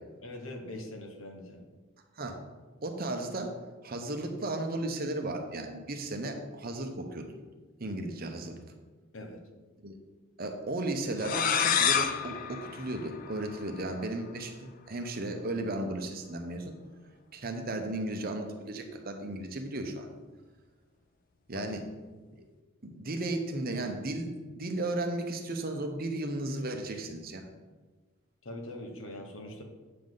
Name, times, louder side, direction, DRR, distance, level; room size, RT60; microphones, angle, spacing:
voice 1, 0.2-1.6 9.1-9.4 21.5-21.7 28.4-29.6, left 1 dB, 65° left, 3 dB, 1.3 m, -42 dB
voice 2, 2.8-3.5 3.8-7.3 7.8-8.6 9.8-10.0 10.4-16.7 17.3-20.1 21.5-21.8 22.8-27.5, right 2 dB, 45° right, 4 dB, 0.9 m, -35 dB
sound 1, 11.2-13.8, left 7 dB, 40° left, 0.4 m, -29 dB
8.6 x 7.1 x 4.0 m, 1.3 s
head